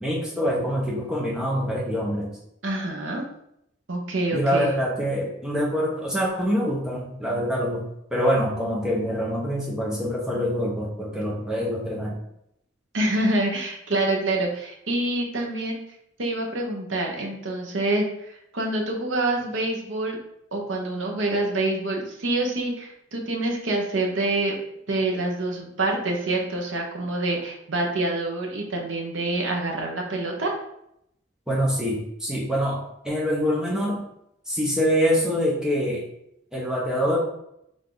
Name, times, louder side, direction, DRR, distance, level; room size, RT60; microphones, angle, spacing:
voice 1, 0.0-2.3 4.3-7.8 8.1-12.2 31.5-32.8 33.0-34.0 34.5-36.0 36.5-37.2, equal, 5° right, -4 dB, 1.0 m, -25 dB
voice 2, 2.6-3.2 3.9-4.8 12.9-15.8 16.2-20.2 20.5-24.6 24.9-30.5, right 2 dB, 90° right, 0 dB, 1.0 m, -26 dB
3.7 x 3.6 x 3.8 m, 0.77 s
head